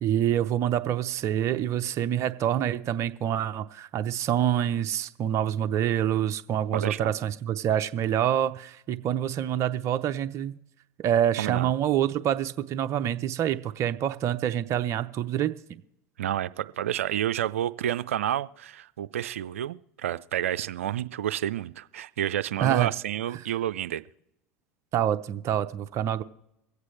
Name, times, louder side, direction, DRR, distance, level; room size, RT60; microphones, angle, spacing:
voice 1, 0.0-10.6 11.0-15.8 22.6-22.9 24.9-26.2, right 10 dB, 45° right, 11 dB, 0.7 m, -26 dB
voice 2, 6.7-7.1 11.4-11.7 16.2-24.0, right 11 dB, 85° right, 14 dB, 0.4 m, -30 dB
24.0 x 8.2 x 3.2 m, 0.85 s
hypercardioid pair, 85°, 7 cm